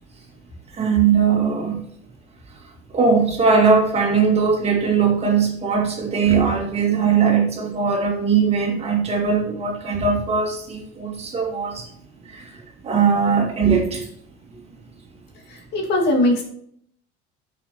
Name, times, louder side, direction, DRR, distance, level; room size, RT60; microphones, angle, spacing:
voice 1, 0.8-1.8 2.9-11.8 12.8-14.1, right 5 dB, 30° right, 1 dB, 2.1 m, -19 dB
voice 2, 15.5-16.4, left 1 dB, 55° left, 0 dB, 2.3 m, -20 dB
12.5 x 6.1 x 3.0 m, 0.65 s
cardioid pair, 125°, 21 cm